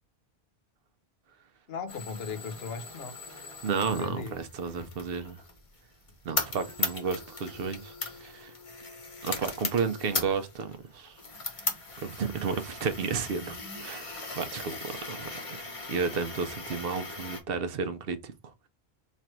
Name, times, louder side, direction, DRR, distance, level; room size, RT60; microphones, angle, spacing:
voice 1, 1.7-3.2 3.6-4.3, left 5 dB, 75° left, 1.0 m, -37 dB
sound 1, 1.9-17.4, left 3 dB, 35° left, 0.8 m, -38 dB
voice 2, 3.6-5.4 6.2-7.9 8.2-8.5 9.2-11.2 12.0-18.3, right 5 dB, 65° right, 0.8 m, -32 dB
3.2 x 2.5 x 4.3 m
omnidirectional pair, 1.1 m